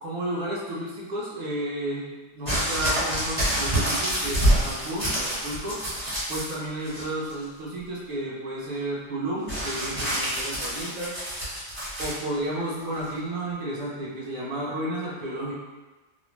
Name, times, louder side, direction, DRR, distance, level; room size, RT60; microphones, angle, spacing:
voice 1, 0.0-2.1 2.3-5.8 6.3-11.2 12.0-15.5, right 1 dB, 50° right, -6 dB, 0.5 m, -32 dB
sound 1, 2.5-6.5 6.8-7.4 9.5-12.2 13.0-13.1, right 1 dB, 30° right, 0.9 m, -27 dB
2.4 x 2.1 x 3.1 m, 1.2 s
omnidirectional pair, 1.4 m